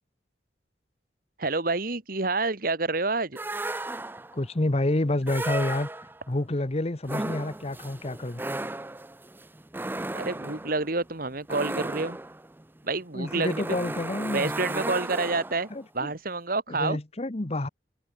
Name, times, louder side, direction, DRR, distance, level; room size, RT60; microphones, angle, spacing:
voice 1, 1.4-3.4 10.1-12.2 12.8-13.8 14.3-15.7 15.9-17.0, right 3 dB, 50° right, 2.0 m, -28 dB
sound 1, 3.4-4.4 5.2-6.3 7.0-15.8, right 2 dB, 10° right, 0.6 m, -35 dB
voice 2, 4.3-5.9 6.3-8.4 13.1-14.5 15.7-16.1 16.7-17.7, left 1 dB, 35° left, 1.0 m, -28 dB
head